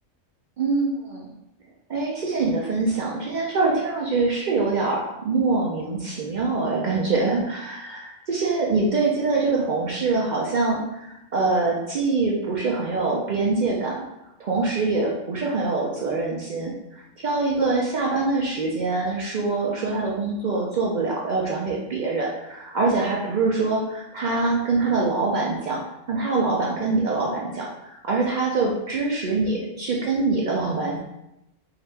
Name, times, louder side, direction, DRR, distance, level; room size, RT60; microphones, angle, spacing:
voice 1, 0.6-1.3 1.9-13.9 14.4-16.7 17.2-25.8 26.1-31.0, right 3 dB, 75° right, -3 dB, 0.4 m, -24 dB
2.8 x 2.5 x 3.2 m, 0.87 s
omnidirectional pair, 1.3 m